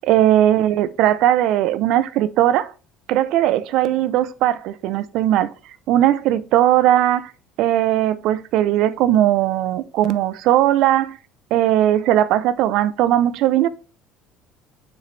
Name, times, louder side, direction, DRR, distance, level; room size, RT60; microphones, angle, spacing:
voice 1, 0.0-2.7 3.1-5.5 5.9-7.3 7.6-11.2 11.5-13.7, right 12 dB, 60° right, 0.6 m, -18 dB
6.7 x 6.2 x 3.2 m
cardioid pair, 170°, 0 cm